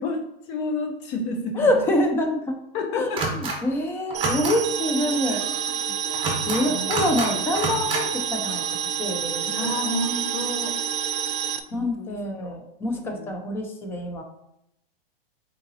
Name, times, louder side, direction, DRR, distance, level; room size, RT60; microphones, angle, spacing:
voice 1, 0.0-1.8 2.7-3.2 5.3-5.4 6.0-6.3 6.7-7.0 9.5-10.7 11.7-12.6 13.0-13.3, left 2 dB, 40° left, 3 dB, 0.8 m, -31 dB
voice 2, 1.5-2.6 2.9-5.9 6.4-8.6 9.0-9.7 11.7-14.2, left 1 dB, 10° left, 3 dB, 0.3 m, -26 dB
sound 1, 3.2-3.5 4.1-4.5 6.1-6.6 6.9-7.3 7.5-8.0, right 3 dB, 15° right, 1.0 m, -27 dB
sound 2, 4.1-11.6, right 8 dB, 65° right, 0.6 m, -28 dB
3.9 x 3.6 x 2.7 m, 0.81 s
hypercardioid pair, 135°, 30 cm